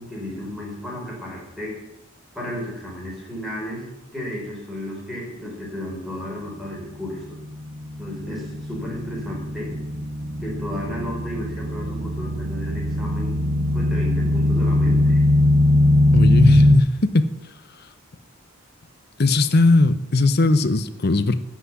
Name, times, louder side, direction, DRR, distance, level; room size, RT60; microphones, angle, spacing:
voice 1, 0.0-1.8 2.3-3.9 4.1-7.4 8.0-9.8 10.4-13.4 13.7-15.2, left 1 dB, ahead, -3 dB, 4.5 m, -33 dB
sound 1, 7.1-16.8, left 1 dB, 45° right, 1.3 m, -20 dB
voice 2, 16.1-17.3 19.2-21.4, left 2 dB, 50° left, 12 dB, 0.7 m, -18 dB
13.5 x 6.1 x 9.5 m, 0.94 s
head